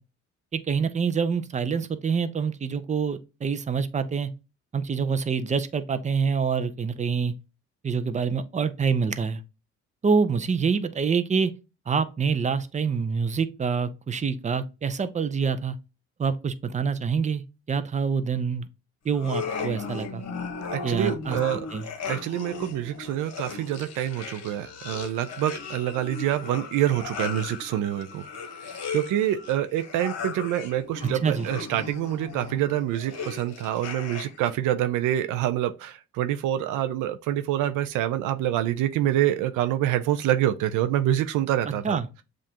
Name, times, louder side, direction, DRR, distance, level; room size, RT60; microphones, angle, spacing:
voice 1, 0.5-4.3 4.7-7.3 7.8-9.4 10.0-11.5 11.9-15.8 16.2-18.7 19.0-20.2 20.8-21.4 21.7-21.9 31.2-31.5 41.8-42.1, right 5 dB, 25° right, 0.5 m, -26 dB
sound 1, 19.1-34.5, left 5 dB, 60° left, 1.1 m, -37 dB
voice 2, 20.7-21.6 22.1-28.2 28.6-42.0, right 12 dB, 90° right, 0.5 m, -26 dB
sound 2, 24.8-29.7, left 7 dB, 35° left, 0.4 m, -47 dB
7.3 x 2.5 x 2.8 m
cardioid pair, 90°, 30 cm